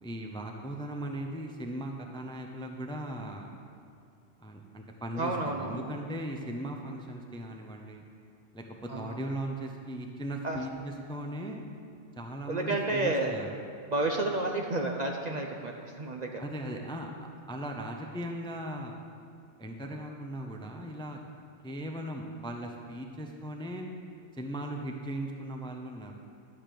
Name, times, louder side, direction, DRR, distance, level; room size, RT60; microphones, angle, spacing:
voice 1, 0.0-3.5 4.4-8.0 8.5-11.6 12.2-13.5 16.4-17.1 17.5-19.0 19.6-21.2 21.6-23.9 24.3-26.1, right 1 dB, 5° left, 2 dB, 0.5 m, -38 dB
voice 2, 5.2-6.0 8.9-9.2 10.4-10.6 12.5-13.4 13.9-16.4, right 2 dB, 45° right, 2 dB, 0.7 m, -31 dB
12.0 x 5.1 x 7.6 m, 2.3 s
omnidirectional pair, 1.2 m